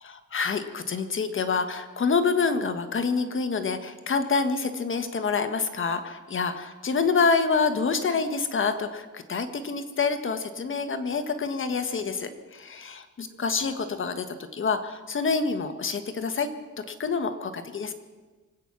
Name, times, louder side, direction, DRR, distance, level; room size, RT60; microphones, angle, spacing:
voice 1, 0.3-12.7 13.2-16.5 16.8-17.9, left 4 dB, 40° left, 9 dB, 1.5 m, -27 dB
25.0 x 9.1 x 6.1 m, 1.3 s
cardioid pair, 90°, 30 cm